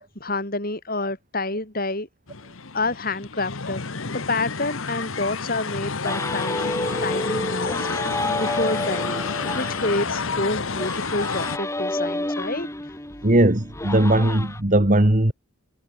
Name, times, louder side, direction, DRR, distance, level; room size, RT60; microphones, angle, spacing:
voice 1, 0.0-2.1 2.7-6.7 7.0-8.0 8.3-9.2 9.5-13.0, left 2 dB, 45° left, 4.7 m, -28 dB
sound 1, 2.3-11.6, left 4 dB, 75° left, 1.4 m, -30 dB
sound 2, 6.0-14.6, left 2 dB, 15° left, 1.2 m, -30 dB
voice 2, 13.2-15.3, right 1 dB, 35° right, 1.8 m, -18 dB
head